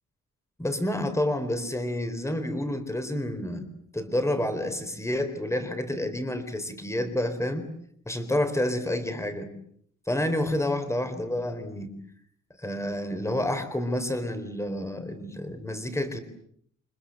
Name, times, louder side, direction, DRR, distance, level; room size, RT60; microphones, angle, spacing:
voice 1, 0.6-3.7 3.9-7.7 8.1-9.5 10.1-11.9 12.6-16.2, left 1 dB, 10° left, 9 dB, 4.1 m, -29 dB
29.5 x 25.5 x 7.9 m, 0.68 s
wide cardioid pair, 155°, 30 cm